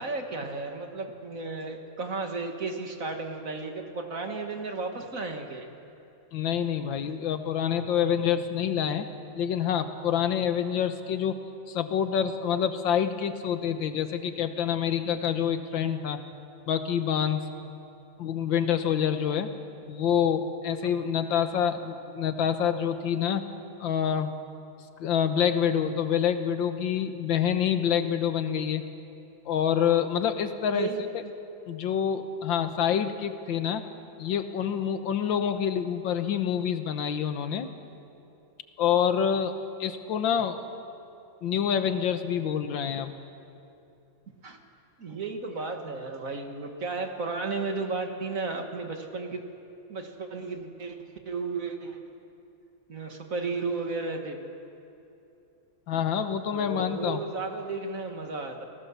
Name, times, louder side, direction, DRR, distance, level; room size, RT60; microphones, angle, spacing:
voice 1, 0.0-5.7 17.5-17.7 30.7-31.3 44.4-44.6 45.0-49.4 49.9-51.0 51.3-52.0 52.9-54.4 55.9-56.0 56.5-58.6, right 3 dB, 45° right, 4 dB, 1.9 m, -34 dB
voice 2, 6.3-9.1 9.4-11.4 11.7-16.2 16.7-17.4 18.2-19.5 19.9-23.4 23.8-24.3 25.0-28.8 29.5-30.9 31.7-33.8 34.2-37.7 38.8-39.5 39.8-40.6 41.4-43.1 55.9-57.2, left 8 dB, 80° left, 9 dB, 1.8 m, -27 dB
26.0 x 17.0 x 7.0 m, 2.7 s
omnidirectional pair, 2.1 m